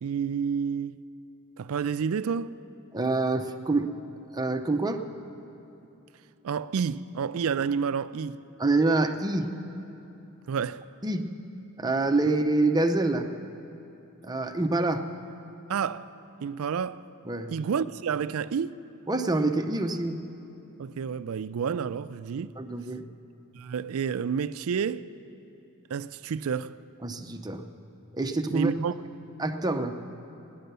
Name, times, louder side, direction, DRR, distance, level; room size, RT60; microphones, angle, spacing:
voice 1, 0.0-1.0 1.6-2.6 6.4-8.4 10.5-10.9 15.7-16.1 16.4-17.0 17.5-18.8 20.8-22.6 23.5-25.1 25.9-26.8 28.5-28.9, right 6 dB, 70° right, 0.4 m, -29 dB
voice 2, 2.9-3.9 4.3-5.0 8.6-9.5 11.0-11.3 11.8-13.3 14.2-15.1 17.3-17.5 19.1-20.2 22.6-23.0 27.0-27.6 28.1-28.7 29.4-30.0, right 2 dB, 20° right, 0.6 m, -26 dB
17.0 x 10.5 x 6.8 m
head